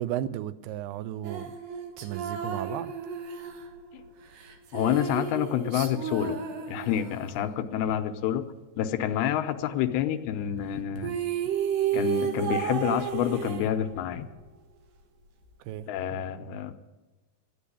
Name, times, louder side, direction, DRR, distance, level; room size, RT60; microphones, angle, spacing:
voice 1, 0.0-1.5 2.0-2.9 15.6-15.9, right 12 dB, 90° right, 14 dB, 2.7 m, -34 dB
sound 1, 1.2-7.4 10.7-10.8 11.0-14.2, right 8 dB, 70° right, 2.8 m, -32 dB
voice 2, 4.7-6.4 6.7-8.4 8.8-11.1 11.9-14.3 15.9-16.7, left 10 dB, 90° left, 9 dB, 2.8 m, -28 dB
12.5 x 10.5 x 8.6 m, 1.2 s
omnidirectional pair, 4.5 m